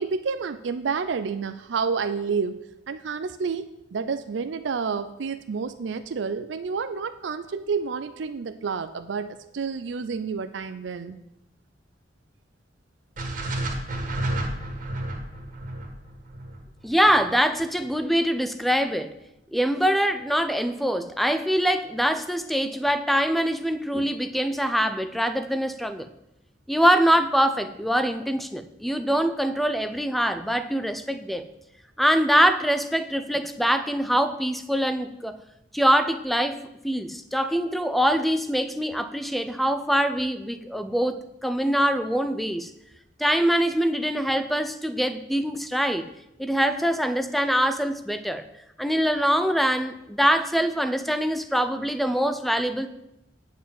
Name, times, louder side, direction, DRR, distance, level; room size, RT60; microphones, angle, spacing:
voice 1, 0.0-2.6 2.9-11.2, right 5 dB, 85° right, 10 dB, 0.5 m, -29 dB
sound 1, 13.2-17.3, right 1 dB, 50° right, 1.6 m, -31 dB
voice 2, 16.8-19.1 19.5-26.1 26.7-31.5 32.0-35.4 35.7-36.6 36.8-42.7 43.2-46.1 46.4-48.5 48.8-52.9, equal, ahead, 11 dB, 0.5 m, -24 dB
9.1 x 4.7 x 7.4 m, 0.87 s
head